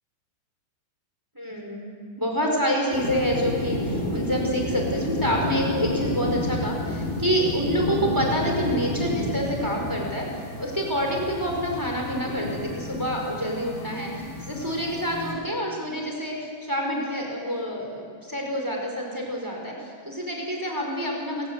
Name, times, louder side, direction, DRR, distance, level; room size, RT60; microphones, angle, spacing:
voice 1, 1.3-1.9 2.2-19.7 20.0-21.5, equal, 5° right, 0 dB, 3.8 m, -27 dB
sound 1, 2.9-15.3, left 1 dB, 55° left, 8.2 m, -30 dB
28.0 x 18.5 x 8.0 m, 2.2 s
omnidirectional pair, 5.5 m